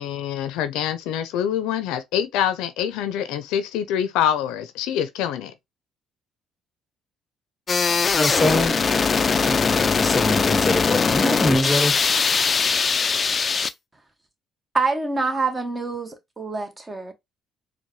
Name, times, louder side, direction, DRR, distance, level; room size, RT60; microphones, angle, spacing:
voice 1, 0.0-5.5, left 9 dB, 80° left, 0.6 m, -25 dB
sound 1, 7.7-13.7, left 5 dB, 40° left, 0.4 m, -21 dB
voice 2, 8.2-12.0, left 1 dB, 15° left, 0.9 m, -24 dB
voice 3, 14.7-17.1, right 4 dB, 20° right, 1.2 m, -26 dB
4.5 x 2.3 x 3.1 m
supercardioid pair, 75°, 0 cm